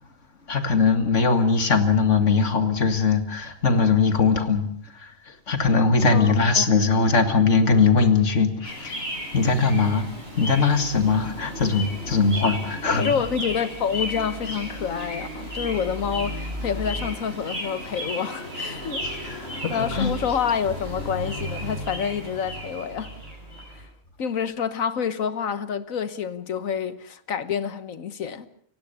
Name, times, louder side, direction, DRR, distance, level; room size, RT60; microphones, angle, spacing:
voice 1, 0.5-4.7 4.9-9.0 9.3-10.1 10.3-13.2 19.0-20.1, left 4 dB, 65° left, 2.3 m, -21 dB
voice 2, 6.1-6.7 13.0-19.0 19.7-23.1 23.7-23.8 24.2-28.5, left 7 dB, 85° left, 1.6 m, -28 dB
sound 1, 8.6-23.8, equal, 50° right, 7.8 m, -34 dB
29.0 x 16.5 x 6.9 m
omnidirectional pair, 1.4 m